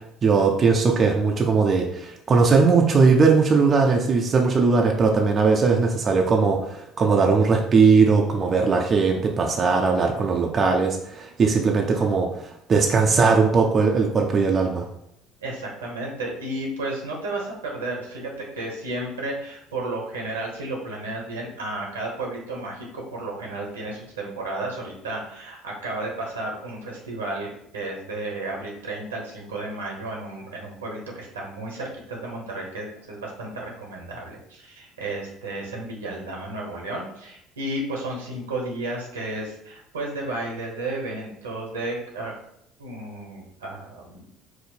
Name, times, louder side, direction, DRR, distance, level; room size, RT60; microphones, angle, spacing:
voice 1, 0.2-14.9, right 4 dB, 35° right, 1 dB, 0.6 m, -19 dB
voice 2, 15.4-42.3 42.8-44.3, right 2 dB, 80° right, -1 dB, 1.1 m, -33 dB
5.1 x 2.0 x 4.2 m, 0.76 s
figure-of-eight pair, 60°, 0 cm